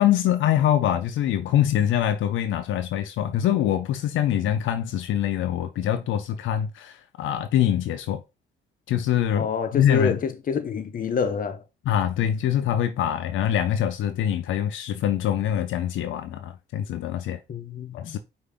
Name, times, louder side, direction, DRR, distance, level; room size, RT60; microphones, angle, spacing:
voice 1, 0.0-8.2 8.9-9.5 9.7-10.2 11.9-17.4 17.9-18.2, left 10 dB, 80° left, 0.5 m, -24 dB
voice 2, 9.4-11.6 17.5-18.2, left 6 dB, 45° left, 0.7 m, -27 dB
5.0 x 2.6 x 3.4 m
cardioid pair, 90°, 20 cm